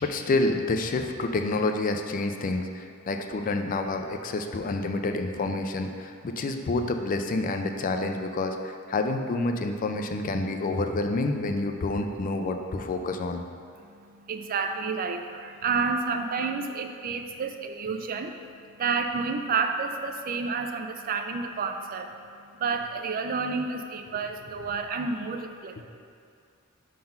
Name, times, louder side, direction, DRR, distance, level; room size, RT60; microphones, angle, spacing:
voice 1, 0.0-13.4, left 2 dB, 40° left, 5 dB, 0.4 m, -28 dB
voice 2, 13.8-22.2 22.6-25.8, right 4 dB, 40° right, 6 dB, 0.4 m, -30 dB
5.3 x 3.8 x 5.7 m, 2.3 s
head